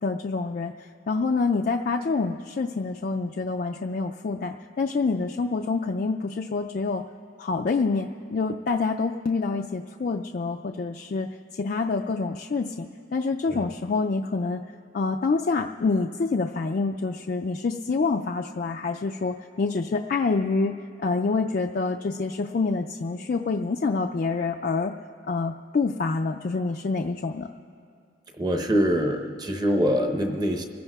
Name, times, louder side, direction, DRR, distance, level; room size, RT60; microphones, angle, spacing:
voice 1, 0.0-7.0 7.4-14.6 14.9-20.7 21.0-24.9 25.3-27.5, left 4 dB, 45° left, 3 dB, 0.3 m, -27 dB
voice 2, 28.4-30.7, equal, 20° right, 4 dB, 0.8 m, -24 dB
26.5 x 15.5 x 2.3 m, 2.4 s
head